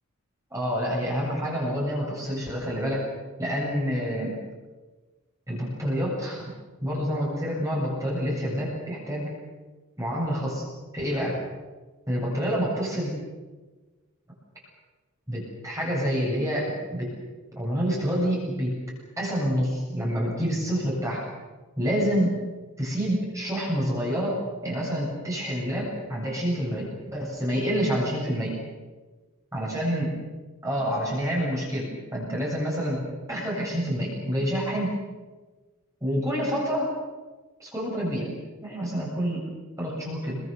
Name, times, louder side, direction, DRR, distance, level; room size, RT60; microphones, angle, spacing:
voice 1, 0.5-3.0 3.4-4.3 5.5-6.4 6.8-9.3 10.0-10.6 10.9-11.4 12.1-13.1 15.3-17.1 17.6-18.8 19.2-21.2 21.8-22.4 22.8-28.6 29.5-30.1 30.6-34.9 36.0-36.9 37.6-38.3 38.6-39.5 39.8-40.4, equal, 15° right, -4 dB, 7.9 m, -27 dB
29.5 x 23.0 x 7.0 m, 1.3 s
head